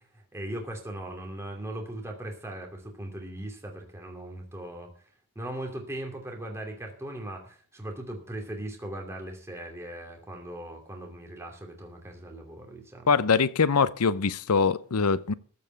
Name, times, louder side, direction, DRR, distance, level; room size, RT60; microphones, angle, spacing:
voice 1, 0.0-4.9 5.3-13.2, right 1 dB, 10° right, 2.7 m, -39 dB
voice 2, 13.1-15.3, left 5 dB, 85° left, 0.7 m, -23 dB
14.5 x 5.4 x 8.8 m
head